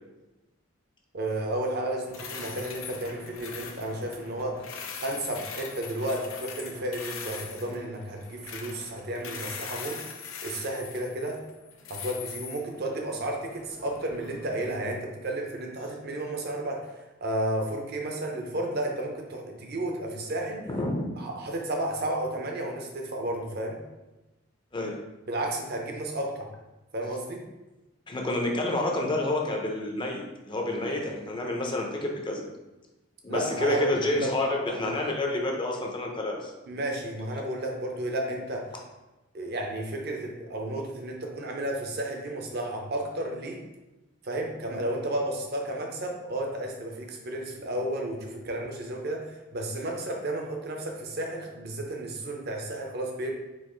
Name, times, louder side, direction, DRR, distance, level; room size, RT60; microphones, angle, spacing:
voice 1, 1.1-4.6 5.0-10.0 10.4-11.4 11.9-20.7 21.2-23.8 25.3-26.5 26.9-27.4 33.3-34.3 36.7-38.7 39.3-43.6 44.2-53.3, right 1 dB, 50° right, 2 dB, 0.7 m, -32 dB
sound 1, 2.0-14.9, left 6 dB, 85° left, 0.6 m, -42 dB
voice 2, 20.7-21.1 24.7-25.0 28.1-32.4 33.2-36.5, left 1 dB, 25° left, 0 dB, 0.6 m, -29 dB
4.6 x 2.5 x 4.4 m, 1.1 s
head